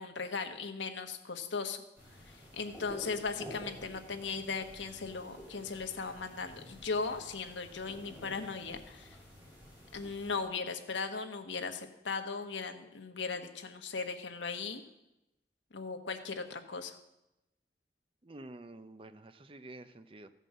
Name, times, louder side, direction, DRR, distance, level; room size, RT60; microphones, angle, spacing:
voice 1, 0.0-1.8 2.3-9.1 9.9-14.8 15.7-17.0, left 4 dB, 90° left, 6 dB, 1.1 m, -38 dB
sound 1, 1.9-10.4, left 1 dB, 10° right, 4.4 m, -51 dB
voice 2, 18.2-20.3, right 2 dB, 30° right, 10 dB, 0.6 m, -49 dB
14.0 x 5.5 x 7.4 m, 0.91 s
head